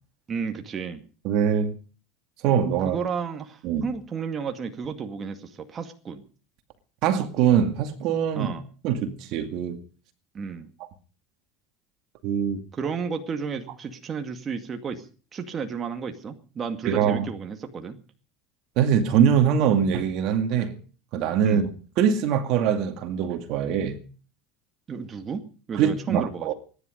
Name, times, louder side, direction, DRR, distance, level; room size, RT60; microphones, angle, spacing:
voice 1, 0.3-1.0 2.8-6.2 8.3-8.6 10.3-10.7 12.7-15.1 15.3-18.0 21.4-21.7 24.9-25.4 25.7-26.5, right 6 dB, 30° right, 2.1 m, -32 dB
voice 2, 1.2-1.7 2.4-3.0 3.6-3.9 7.0-8.5 8.8-9.8 12.2-12.6 16.8-17.3 18.8-20.8 21.1-21.7 22.0-24.0 25.7-26.5, right 8 dB, 60° right, 2.2 m, -23 dB
24.0 x 10.5 x 5.2 m
supercardioid pair, 120°, 0 cm